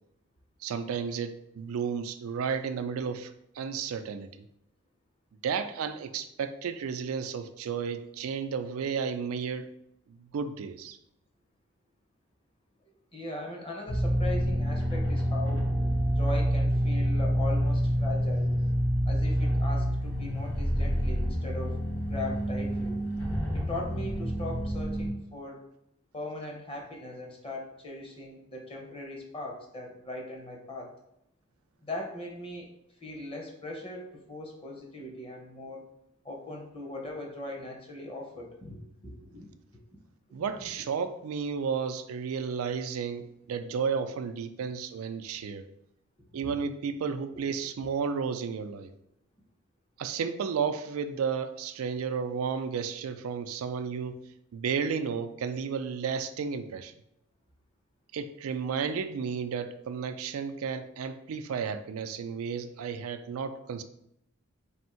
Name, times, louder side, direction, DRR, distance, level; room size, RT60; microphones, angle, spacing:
voice 1, 0.6-3.3 3.6-4.5 5.4-9.7 10.2-11.0 40.3-45.6 46.3-48.9 50.0-56.9 58.1-63.8, right 6 dB, 85° right, 9 dB, 0.4 m, -33 dB
voice 2, 12.8-15.7 16.1-18.6 19.1-21.8 22.1-22.9 23.5-25.6 26.1-30.9 31.8-32.7 33.0-35.8 36.2-39.8 40.4-40.5 43.7-43.8 46.3-46.6, left 2 dB, 25° left, 1 dB, 0.8 m, -39 dB
sound 1, 13.9-25.1, equal, 65° left, 1.6 m, -27 dB
3.5 x 2.6 x 4.3 m, 0.77 s
head